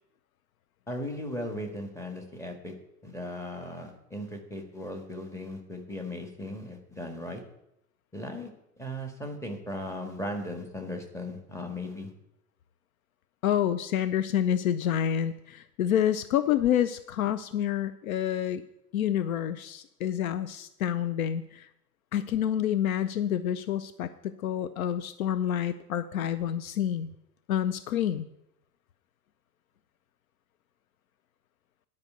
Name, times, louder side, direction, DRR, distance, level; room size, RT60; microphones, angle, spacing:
voice 1, 0.9-2.7 3.0-7.4 8.1-8.5 8.8-12.1, left 1 dB, 5° left, 2 dB, 1.7 m, -37 dB
voice 2, 13.4-18.6 18.9-21.7 22.1-27.1 27.5-28.3, left 10 dB, 60° left, 12 dB, 0.6 m, -28 dB
10.5 x 5.3 x 8.0 m, 0.83 s
figure-of-eight pair, 85°, 48 cm